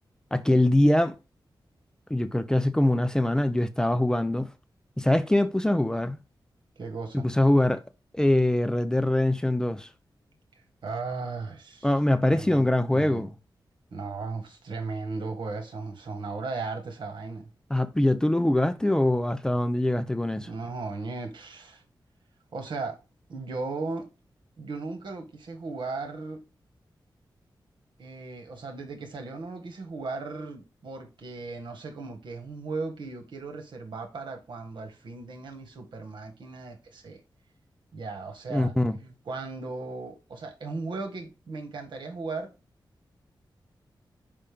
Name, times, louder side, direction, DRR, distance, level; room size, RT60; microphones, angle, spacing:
voice 1, 0.3-1.1 2.1-4.5 5.0-6.2 7.1-7.8 8.1-9.9 11.8-13.3 17.7-20.5 38.5-39.0, left 1 dB, 10° left, 0.4 m, -23 dB
voice 2, 6.8-7.3 10.8-11.9 12.3-13.2 13.9-17.5 20.4-21.8 22.5-23.0 23.3-24.1 24.6-26.4 28.0-37.2 37.9-38.7 39.0-42.5, right 3 dB, 75° right, 1.5 m, -36 dB
5.6 x 5.1 x 3.5 m
wide cardioid pair, 170°, 8 cm